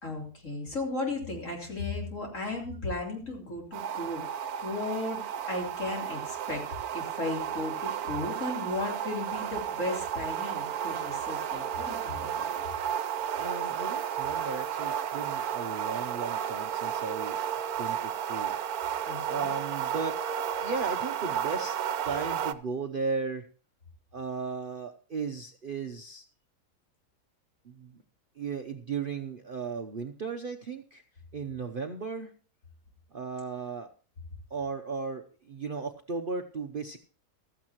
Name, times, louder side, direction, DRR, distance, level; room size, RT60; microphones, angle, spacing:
voice 1, 0.0-6.7 6.9-12.6 19.0-19.5, left 2 dB, 50° left, 0 dB, 3.9 m, -35 dB
sound 1, 3.7-22.5, right 9 dB, 70° right, 1.2 m, -33 dB
voice 2, 13.4-17.4 17.8-18.6 19.2-20.2 20.6-21.8 22.0-23.4 24.1-26.3 27.6-28.0 28.4-31.0 31.3-32.3 33.1-33.9 34.5-37.0, right 4 dB, 45° right, 4 dB, 0.8 m, -36 dB
15.0 x 14.0 x 3.0 m, 0.39 s
omnidirectional pair, 1.7 m